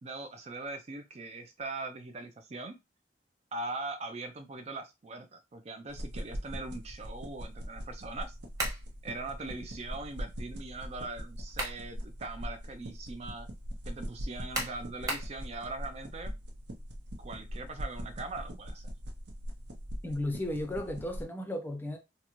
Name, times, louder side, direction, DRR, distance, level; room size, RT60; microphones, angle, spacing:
voice 1, 0.0-2.8 3.5-8.4 9.0-13.5 13.9-16.3 17.2-18.9, right 3 dB, 35° right, 0.4 m, -41 dB
sound 1, 5.9-21.2, equal, 75° right, 0.7 m, -41 dB
sound 2, 8.6-8.9 11.2-11.9 12.3-12.4 14.5-15.4, right 1 dB, 20° right, 1.2 m, -34 dB
voice 2, 20.0-22.0, left 1 dB, 10° left, 0.6 m, -34 dB
3.9 x 2.1 x 3.0 m
head